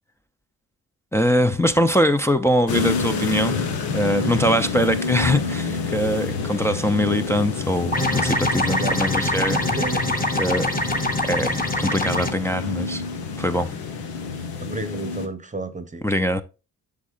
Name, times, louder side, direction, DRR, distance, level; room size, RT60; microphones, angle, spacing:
voice 1, 1.1-3.7 3.9-9.7 10.4-10.7 11.2-13.0 13.4-13.7 16.0-16.4, equal, 5° left, 0.6 m, -22 dB
sound 1, 2.7-15.3, left 4 dB, 85° left, 1.3 m, -28 dB
sound 2, 7.9-12.3, left 1 dB, 25° left, 1.4 m, -24 dB
voice 2, 8.6-8.9 9.5-10.1 10.9-11.0 14.6-16.1, right 2 dB, 20° right, 0.9 m, -32 dB
8.3 x 6.2 x 2.5 m
cardioid pair, 75°, 36 cm